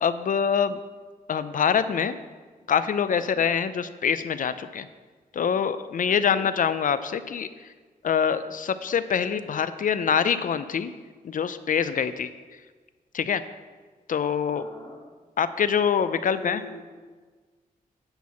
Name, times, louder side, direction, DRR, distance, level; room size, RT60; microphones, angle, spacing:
voice 1, 0.0-0.8 1.3-2.2 2.7-4.9 5.3-7.7 8.0-10.9 11.2-12.3 13.1-13.4 14.1-14.6 15.4-16.6, left 7 dB, 60° left, 13 dB, 0.5 m, -25 dB
voice 2, 3.2-3.5 6.0-6.5 14.5-15.0 16.1-16.8, left 1 dB, 25° left, -5 dB, 2.4 m, -43 dB
10.5 x 4.6 x 7.1 m, 1.4 s
cardioid pair, 90°, 16 cm